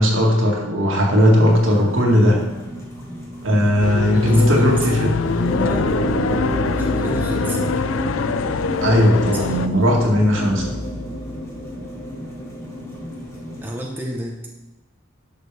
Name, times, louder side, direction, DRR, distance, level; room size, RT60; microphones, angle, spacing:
voice 1, 0.0-2.4 3.4-5.1 8.8-10.8, equal, 70° right, -1 dB, 2.0 m, -17 dB
sound 1, 1.3-13.7, equal, 15° left, 1.7 m, -37 dB
sound 2, 3.8-9.7, left 5 dB, 75° left, 0.4 m, -24 dB
voice 2, 4.1-5.9 6.8-7.7 9.3-9.6 13.6-14.4, right 1 dB, 10° right, -2 dB, 1.0 m, -30 dB
sound 3, 5.5-13.6, equal, 55° left, 2.1 m, -28 dB
11.0 x 6.6 x 3.5 m, 1.1 s
head